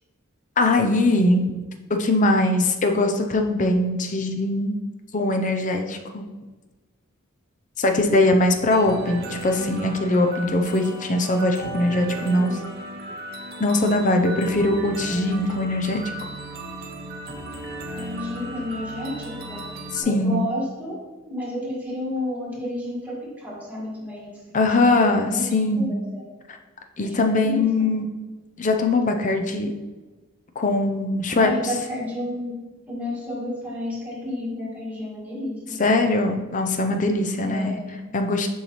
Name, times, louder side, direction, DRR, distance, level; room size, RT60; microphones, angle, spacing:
voice 1, 0.6-1.5 1.9-4.7 5.1-6.2 7.8-12.6 13.6-16.0 19.9-20.4 24.5-25.9 27.0-28.1 28.6-29.7 30.6-31.5 35.8-37.8 38.1-38.5, left 2 dB, 40° left, 5 dB, 0.6 m, -21 dB
sound 1, 8.7-20.0, right 1 dB, 50° right, 0.8 m, -35 dB
voice 2, 11.8-12.6 17.9-19.6 20.0-21.0 21.3-24.3 24.8-26.2 27.0-27.7 31.3-32.5 32.9-35.8 37.4-37.9, left 1 dB, 10° right, -6 dB, 1.9 m, -31 dB
6.9 x 5.5 x 3.1 m, 1.2 s
head